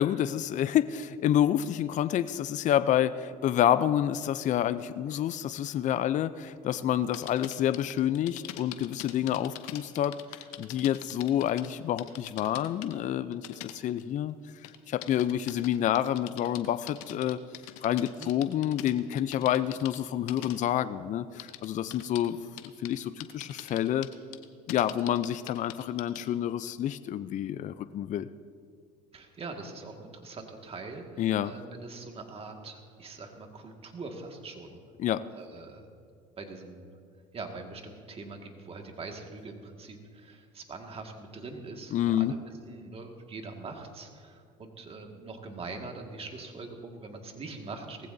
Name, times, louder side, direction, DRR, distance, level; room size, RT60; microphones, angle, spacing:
voice 1, 0.0-10.2 10.6-14.3 14.9-17.4 17.8-22.4 22.8-24.1 24.7-28.3 31.2-31.5 35.0-35.2 41.9-42.3, left 11 dB, 45° left, 13 dB, 0.5 m, -28 dB
sound 1, 7.1-11.7 12.0-12.9 13.3-14.2 14.6-20.0 20.3-20.6 21.4-22.3 22.6-23.0 23.2-26.3, left 15 dB, 80° left, 0.8 m, -43 dB
voice 2, 29.1-34.8 35.4-35.9 36.4-36.9 37.3-42.4 42.7-48.1, right 3 dB, 35° right, 3 dB, 1.9 m, -43 dB
19.0 x 15.0 x 2.7 m, 2.2 s
supercardioid pair, 90°, 18 cm